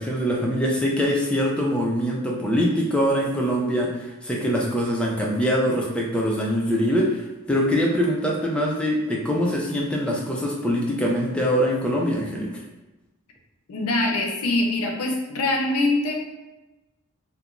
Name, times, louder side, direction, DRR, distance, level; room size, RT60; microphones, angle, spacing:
voice 1, 0.0-12.5, equal, 5° left, -2 dB, 0.3 m, -23 dB
voice 2, 13.7-16.1, left 2 dB, 85° left, 1 dB, 0.5 m, -23 dB
2.9 x 2.1 x 2.4 m, 1.1 s
head